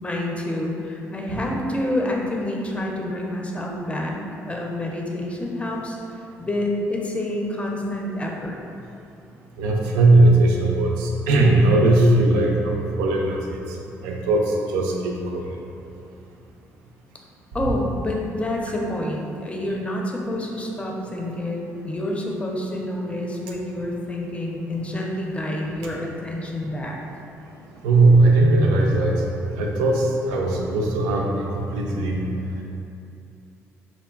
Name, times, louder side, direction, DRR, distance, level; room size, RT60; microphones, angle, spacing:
voice 1, 0.0-6.0 6.4-8.6 17.5-27.0, left 1 dB, 20° left, -1 dB, 0.5 m, -28 dB
voice 2, 9.6-13.8 14.0-15.5 17.6-17.7 27.8-29.2 29.6-32.3, right 2 dB, 85° right, 0 dB, 0.3 m, -19 dB
3.8 x 2.1 x 2.3 m, 2.7 s
supercardioid pair, 60°, 6 cm